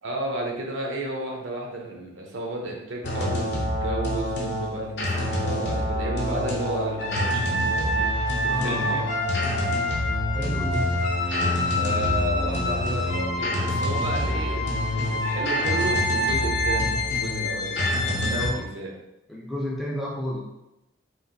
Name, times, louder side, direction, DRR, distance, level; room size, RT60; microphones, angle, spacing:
voice 1, 0.0-8.1 8.4-9.1 11.6-18.9, right 1 dB, 85° right, 0 dB, 0.7 m, -33 dB
sound 1, 3.0-18.5, left 1 dB, 60° left, 0.6 m, -25 dB
voice 2, 8.4-9.2 10.3-10.9 18.3-18.6 19.3-20.5, equal, ahead, -3 dB, 0.3 m, -31 dB
3.1 x 2.4 x 2.6 m, 0.92 s
head